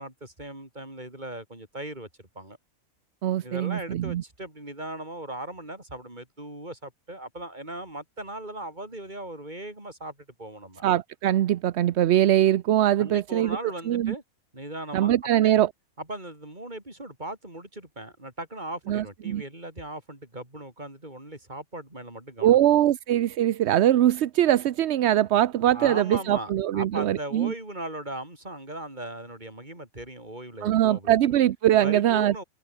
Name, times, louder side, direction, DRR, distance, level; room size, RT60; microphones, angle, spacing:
voice 1, 0.0-2.6 3.4-10.8 13.0-14.2 14.5-15.1 15.4-15.5 16.0-22.6 25.4-25.5 25.7-31.2 31.8-32.4, right 1 dB, 30° right, 5.7 m, -38 dB
voice 2, 3.2-4.2 10.8-13.6 13.9-14.1 14.9-15.7 18.9-19.4 22.4-27.5 30.6-32.4, right 12 dB, 60° right, 0.8 m, -22 dB
omnidirectional pair, 1.5 m